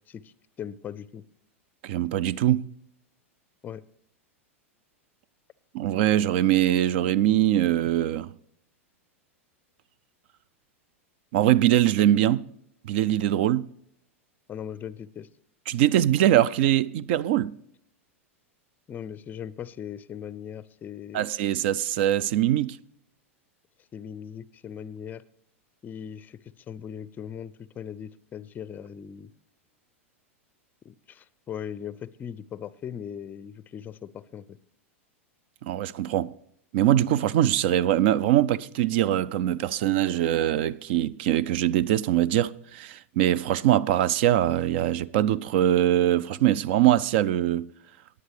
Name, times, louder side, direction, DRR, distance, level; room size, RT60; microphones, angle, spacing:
voice 1, 0.1-1.2 3.6-3.8 14.5-15.3 18.9-21.3 23.9-25.2 25.8-29.3 30.8-34.6, left 8 dB, 25° left, 0.5 m, -39 dB
voice 2, 1.8-2.7 5.7-8.3 11.3-12.5 12.8-13.7 15.7-17.5 21.1-22.8 35.6-36.3 36.7-47.7, right 12 dB, 50° right, 0.4 m, -22 dB
19.0 x 9.4 x 3.3 m
figure-of-eight pair, 95°, 7 cm